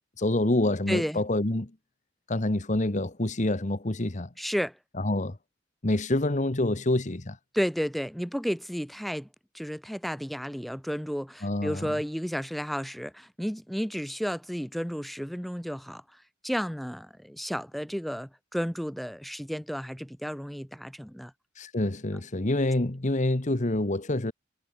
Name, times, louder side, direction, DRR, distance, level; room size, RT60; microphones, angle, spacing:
voice 1, 0.2-1.7 2.3-4.3 5.0-5.4 5.8-7.4 11.4-12.0 21.6-24.3, left 1 dB, 40° left, 1.2 m, -27 dB
voice 2, 0.9-1.2 4.4-4.8 7.5-9.3 9.5-16.0 16.4-21.3, equal, ahead, 1.5 m, -32 dB
head